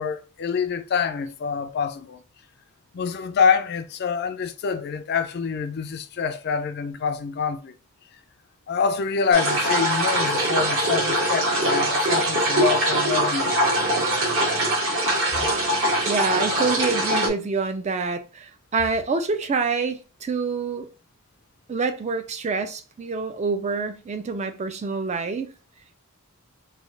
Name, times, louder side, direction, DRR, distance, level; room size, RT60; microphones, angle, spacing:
voice 1, 0.0-2.2 2.9-7.7 8.7-13.6, left 6 dB, 45° left, 0.3 m, -26 dB
sound 1, 9.3-17.3, right 1 dB, 60° right, 1.3 m, -22 dB
voice 2, 16.1-20.9 21.7-25.5, right 4 dB, 30° right, 0.3 m, -26 dB
3.2 x 2.3 x 3.7 m
head